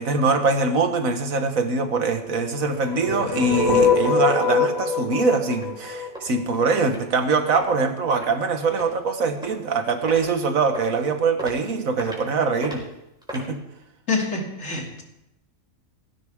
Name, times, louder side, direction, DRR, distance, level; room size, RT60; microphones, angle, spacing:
voice 1, 0.0-12.8 13.3-13.6, right 4 dB, 80° right, 1.7 m, -23 dB
sound 1, 2.7-6.8, left 4 dB, 85° left, 3.1 m, -23 dB
sound 2, 5.0-5.1 5.5-5.7 6.1-6.3 6.8-7.0 7.5-7.7 8.1-8.3 8.8-9.0 9.4-9.7 10.1-10.2 10.7-10.9 11.4-11.5 12.0-12.2 12.6-12.8 13.2-13.5, equal, 5° right, 4.7 m, -36 dB
voice 2, 14.1-15.0, left 3 dB, 65° left, 3.1 m, -26 dB
18.0 x 16.5 x 3.6 m
omnidirectional pair, 1.4 m